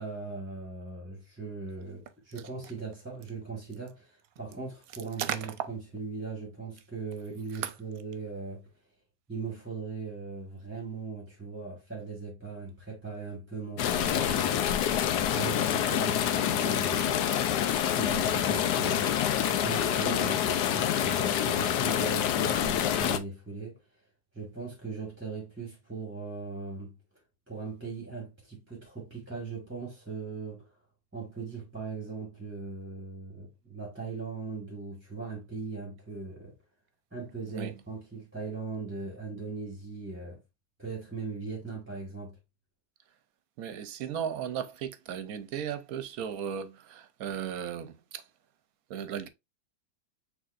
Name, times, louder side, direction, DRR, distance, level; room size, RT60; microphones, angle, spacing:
voice 1, 0.0-8.7 9.3-14.6 15.2-23.8 24.3-26.9 27.5-30.8 31.1-36.5 37.1-40.4 40.8-42.4, right 4 dB, 10° right, 1.3 m, -39 dB
voice 2, 5.2-5.7 7.5-7.7 37.5-37.7 43.6-48.2 48.9-49.3, right 9 dB, 70° right, 1.0 m, -35 dB
sound 1, 13.8-23.2, left 10 dB, 85° left, 1.2 m, -27 dB
6.3 x 3.2 x 2.5 m
omnidirectional pair, 1.7 m